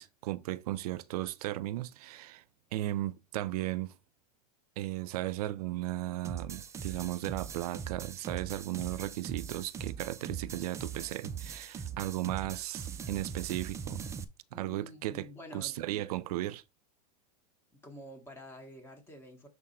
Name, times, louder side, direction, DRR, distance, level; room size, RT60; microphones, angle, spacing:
voice 1, 0.0-2.4 2.7-3.9 4.8-14.0 14.5-15.3 15.5-16.6, right 15 dB, 70° right, 0.6 m, -36 dB
sound 1, 6.2-14.2, right 7 dB, 15° right, 0.5 m, -41 dB
voice 2, 14.5-15.9 17.7-19.5, left 1 dB, 10° left, 1.9 m, -49 dB
6.5 x 3.7 x 4.3 m
supercardioid pair, 150°, 20 cm